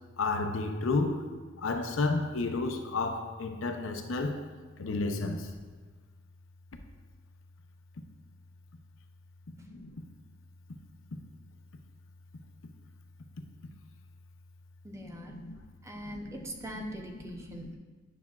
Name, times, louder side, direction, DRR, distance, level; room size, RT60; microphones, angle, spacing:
voice 1, 0.2-1.3 1.6-4.4 4.8-5.5 9.7-9.9 15.0-15.6 16.0-16.3 17.5-17.8, left 3 dB, 80° left, 5 dB, 0.6 m, -32 dB
voice 2, 14.8-15.4 15.8-17.8, equal, 15° right, 2 dB, 0.6 m, -42 dB
9.5 x 5.8 x 2.3 m, 1.4 s
head